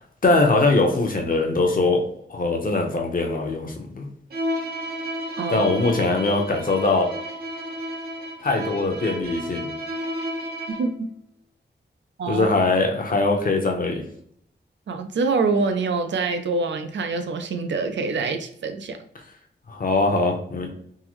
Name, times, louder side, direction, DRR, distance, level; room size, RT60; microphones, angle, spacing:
voice 1, 0.2-2.0 2.3-4.1 5.5-7.1 8.4-9.7 12.3-14.0 19.7-20.7, left 3 dB, 50° left, 2 dB, 0.7 m, -21 dB
Bowed string instrument, 4.3-11.0, equal, 60° right, 0.8 m, -32 dB
voice 2, 5.4-5.7 10.8-11.1 12.2-12.5 14.9-19.0, right 4 dB, 80° right, 6 dB, 0.4 m, -25 dB
3.7 x 2.0 x 3.0 m, 0.67 s
wide cardioid pair, 110°, 18 cm